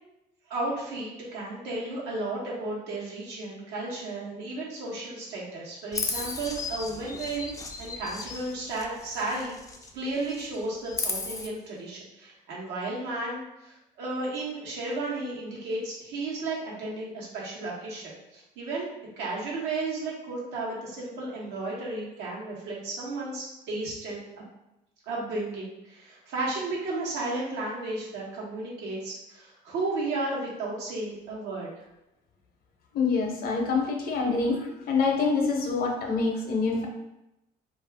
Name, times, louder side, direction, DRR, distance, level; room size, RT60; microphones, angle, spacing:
voice 1, 0.5-9.6 9.9-18.9 19.2-24.4 25.1-31.7, right 2 dB, 90° right, -4 dB, 1.0 m, -33 dB
Chirp tweet, 5.9-9.9 10.2-11.5, left 3 dB, 20° left, 0.3 m, -35 dB
voice 2, 32.9-34.6 34.9-36.9, left 4 dB, 60° left, 1 dB, 0.7 m, -26 dB
2.5 x 2.4 x 3.3 m, 0.91 s
cardioid pair, 110°, 17 cm